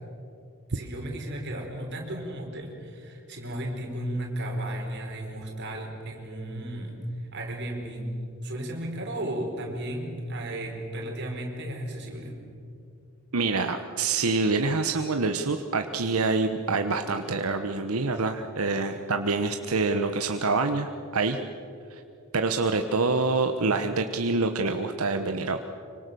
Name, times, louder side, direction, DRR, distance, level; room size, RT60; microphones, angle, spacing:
voice 1, 0.7-7.0 7.3-8.1 8.4-12.4, right 1 dB, 55° right, 1 dB, 4.7 m, -34 dB
voice 2, 13.3-21.4 21.9-22.0 22.3-25.6, right 3 dB, 90° right, 6 dB, 1.1 m, -26 dB
25.5 x 24.5 x 7.0 m, 2.5 s
head